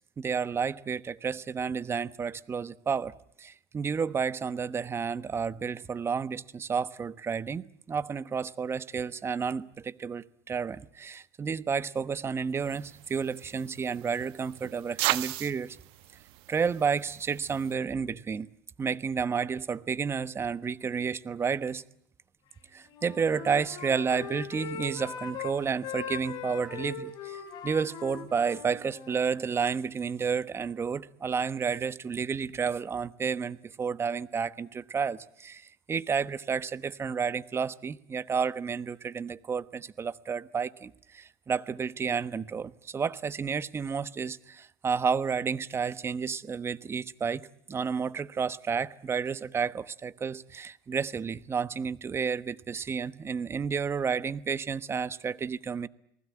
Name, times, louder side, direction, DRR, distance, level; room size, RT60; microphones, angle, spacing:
voice 1, 0.2-3.1 3.4-15.8 16.5-18.5 18.8-21.8 22.7-55.9, right 6 dB, 25° right, 1.1 m, -31 dB
sound 1, 12.6-17.7, right 18 dB, 75° right, 1.4 m, -37 dB
Wind instrument woodwind instrument, 22.8-25.5 25.8-29.4, left 7 dB, 55° left, 7.3 m, -40 dB
29.0 x 19.5 x 8.5 m
supercardioid pair, 105°, 9 cm